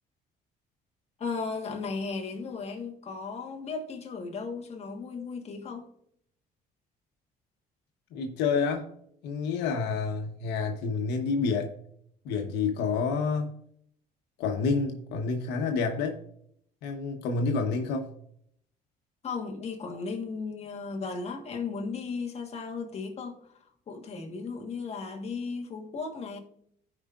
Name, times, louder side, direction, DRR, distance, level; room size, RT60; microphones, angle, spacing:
voice 1, 1.2-5.9 19.2-26.4, left 4 dB, 40° left, 1.3 m, -36 dB
voice 2, 8.1-8.9 9.2-11.7 12.2-13.6 14.4-16.1 16.8-18.1, left 4 dB, 85° left, 1.0 m, -28 dB
14.5 x 5.0 x 2.4 m
cardioid pair, 110°, 17 cm